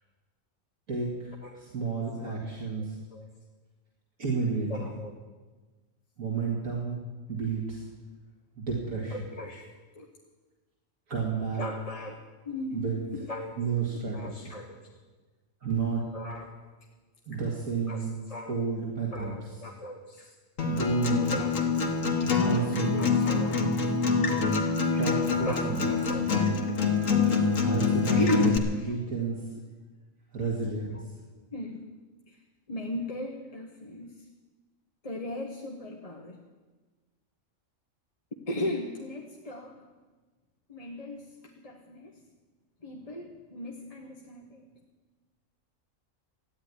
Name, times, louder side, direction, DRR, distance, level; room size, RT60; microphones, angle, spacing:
voice 1, 0.9-2.9 4.2-4.9 6.2-7.0 7.3-7.9 8.6-9.2 11.1-11.6 12.7-12.9 13.6-14.5 15.6-16.0 17.3-18.1 18.5-19.4 20.7-21.3 22.4-23.1 24.9-26.1 27.6-28.6 28.9-29.5 30.3-31.0, right 5 dB, 80° right, -2 dB, 2.6 m, -31 dB
voice 2, 4.7-5.2 9.1-10.1 11.6-12.2 12.4-12.8 13.1-13.6 14.1-14.8 16.1-16.6 17.3-17.4 17.9-18.6 19.1-20.3 21.3-21.7 23.0-23.6 25.4-26.2 27.1-27.5 28.1-28.9 31.5-31.8 32.3-32.4 32.7-34.3 35.0-36.4 38.5-39.8 40.7-42.2 42.8-44.6, left 1 dB, 30° left, 0 dB, 1.3 m, -37 dB
Acoustic guitar, 20.6-28.6, left 4 dB, 70° left, 1.9 m, -25 dB
14.5 x 9.9 x 9.8 m, 1.3 s
omnidirectional pair, 1.4 m